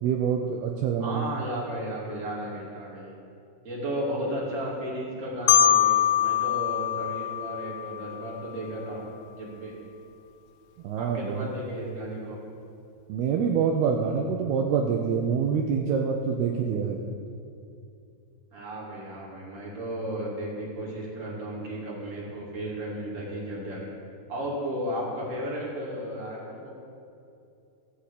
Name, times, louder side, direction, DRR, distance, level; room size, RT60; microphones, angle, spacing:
voice 1, 0.0-1.2 10.8-11.5 13.1-17.0, right 6 dB, 75° right, 2 dB, 2.5 m, -26 dB
voice 2, 1.0-3.1 3.6-9.0 9.3-9.7 10.9-12.4 18.5-23.9 24.3-26.7, equal, 20° right, -5 dB, 2.6 m, -34 dB
Marimba xylophone, 5.5-8.3, left 11 dB, 85° left, 2.2 m, -23 dB
16.0 x 5.8 x 8.3 m, 2.6 s
omnidirectional pair, 5.0 m